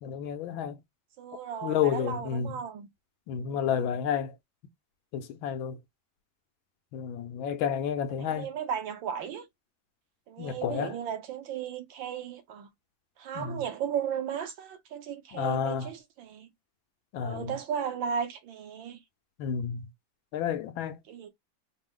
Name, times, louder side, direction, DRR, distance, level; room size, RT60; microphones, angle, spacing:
voice 1, 0.0-0.8 1.6-2.5 3.3-4.3 5.1-5.8 6.9-8.5 10.4-10.9 13.3-13.6 15.3-15.9 17.1-17.6 19.4-19.9 20.3-21.0, left 8 dB, 80° left, 1.5 m, -30 dB
voice 2, 1.2-2.9 3.4-3.9 8.2-9.5 10.3-12.7 13.2-16.5 17.2-19.0 21.1-21.3, right 8 dB, 75° right, 1.6 m, -35 dB
4.8 x 2.1 x 3.6 m
omnidirectional pair, 2.1 m